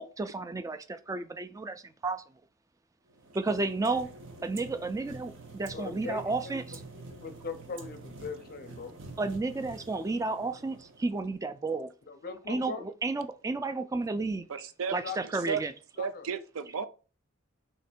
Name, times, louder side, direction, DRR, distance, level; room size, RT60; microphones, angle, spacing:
voice 1, 0.0-2.2 3.3-4.1 4.4-6.8 9.2-11.9 12.5-14.4 14.9-15.7, right 3 dB, 15° right, 0.3 m, -32 dB
sound 1, 3.1-11.4, right 3 dB, 65° right, 0.8 m, -47 dB
voice 2, 5.7-6.6 6.9-8.9 12.1-12.9 15.0-15.2 16.0-16.3, left 4 dB, 45° left, 0.5 m, -40 dB
voice 3, 14.5-15.6 16.0-16.9, right 6 dB, 85° right, 0.5 m, -34 dB
3.2 x 2.9 x 4.4 m
head